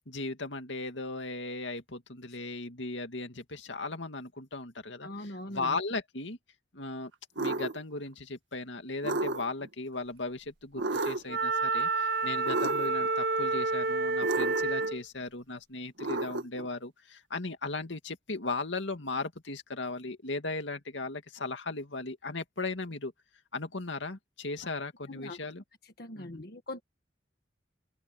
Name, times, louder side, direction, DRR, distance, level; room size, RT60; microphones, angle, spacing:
voice 1, 0.0-6.4 6.7-7.1 7.4-23.1 23.5-25.6 26.2-26.4, left 3 dB, 80° left, 2.3 m, -37 dB
voice 2, 5.0-5.8 25.1-25.4 26.0-26.8, left 1 dB, 55° left, 1.5 m, -41 dB
sound 1, 7.4-7.8 9.0-9.7 10.8-11.4 12.5-13.1 14.2-14.9 16.0-16.7, right 2 dB, 80° right, 1.9 m, -32 dB
Wind instrument woodwind instrument, 11.3-15.0, right 3 dB, 55° right, 0.7 m, -29 dB
open air
head